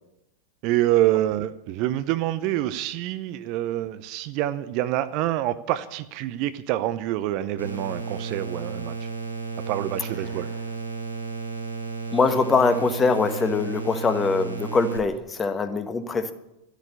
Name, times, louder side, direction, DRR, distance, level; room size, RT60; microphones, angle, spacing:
voice 1, 0.6-9.1 9.7-10.5, right 14 dB, 45° right, 13 dB, 0.6 m, -26 dB
sound 1, 7.6-15.0, right 4 dB, 85° right, 3.7 m, -33 dB
voice 2, 12.1-16.3, left 4 dB, 20° left, 9 dB, 1.3 m, -23 dB
12.5 x 8.2 x 9.9 m, 0.88 s
figure-of-eight pair, 90°, 0 cm